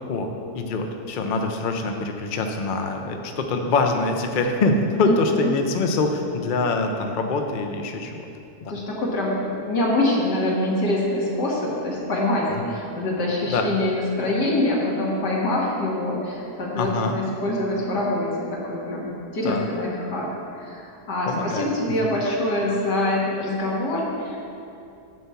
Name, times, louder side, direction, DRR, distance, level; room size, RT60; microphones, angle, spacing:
voice 1, 0.0-8.3 8.6-8.7 12.6-12.7 13.4-13.7 16.7-17.2 19.4-19.7 21.3-21.7, left 3 dB, 55° left, 4 dB, 0.5 m, -24 dB
voice 2, 5.1-5.5 8.7-24.4, left 1 dB, 85° left, -4 dB, 2.3 m, -25 dB
9.6 x 4.6 x 7.0 m, 2.7 s
omnidirectional pair, 1.8 m